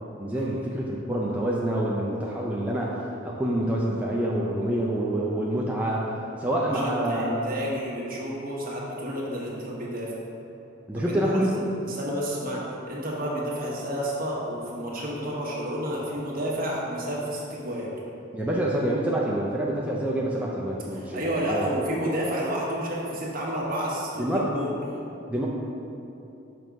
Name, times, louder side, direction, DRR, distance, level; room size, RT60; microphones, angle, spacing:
voice 1, 0.2-6.1 6.4-7.4 10.9-11.6 18.3-21.7 24.2-24.7 25.3-25.5, right 1 dB, 10° right, -5 dB, 0.4 m, -27 dB
voice 2, 6.6-10.1 10.9-17.9 20.9-24.7, equal, 50° right, -4 dB, 1.2 m, -30 dB
6.0 x 3.5 x 5.1 m, 2.9 s
head